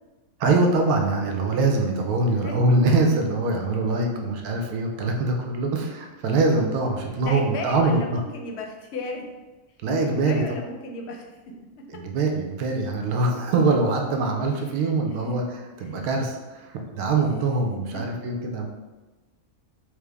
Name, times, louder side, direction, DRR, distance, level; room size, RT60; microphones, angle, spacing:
voice 1, 0.4-8.2 9.8-10.4 11.9-15.4 15.8-18.7, right 3 dB, 90° right, 2 dB, 1.1 m, -23 dB
voice 2, 2.4-2.8 4.1-4.3 7.2-9.2 10.0-11.3 14.6-14.9 15.3-15.4 15.8-16.0, left 3 dB, 60° left, 2 dB, 0.7 m, -35 dB
4.6 x 2.0 x 3.3 m, 1.2 s
omnidirectional pair, 1.5 m